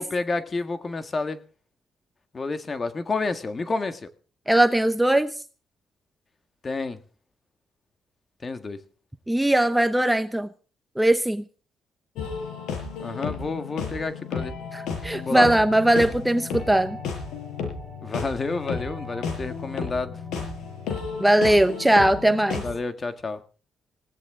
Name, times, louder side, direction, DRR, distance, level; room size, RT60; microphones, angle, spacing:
voice 1, 0.0-1.4 2.3-4.1 6.6-7.0 8.4-8.8 13.0-14.5 15.2-15.5 18.0-20.2 22.6-23.4, left 3 dB, 35° left, 1.7 m, -29 dB
voice 2, 4.5-5.3 9.3-10.5 11.0-11.4 14.7-17.0 21.2-22.6, right 1 dB, 5° right, 0.9 m, -20 dB
sound 1, 12.2-22.8, left 5 dB, 85° left, 7.0 m, -33 dB
20.0 x 17.0 x 3.7 m
cardioid pair, 90°, 0 cm